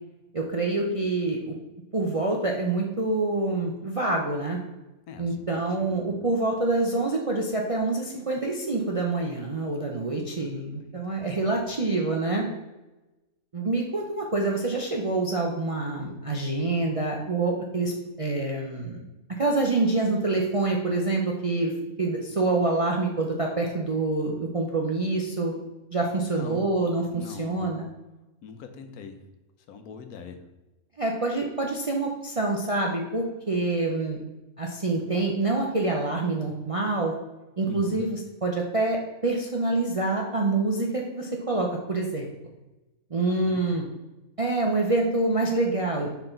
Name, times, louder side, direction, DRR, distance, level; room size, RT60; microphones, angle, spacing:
voice 1, 0.3-1.5 1.9-4.6 5.2-12.5 13.5-17.9 18.2-19.0 19.4-21.7 22.0-25.6 25.9-27.9 31.0-34.2 34.6-37.1 37.6-39.0 39.2-42.3 43.1-43.9 44.4-46.1, right 2 dB, 45° right, 0 dB, 0.4 m, -26 dB
voice 2, 5.1-5.6 6.0-6.1 10.4-10.5 11.1-11.6 26.2-26.7 27.1-27.7 28.4-29.2 29.7-30.4 37.7-38.0 43.3-43.7, left 5 dB, 85° left, 7 dB, 1.2 m, -42 dB
5.9 x 4.7 x 3.8 m, 1.1 s
omnidirectional pair, 1.5 m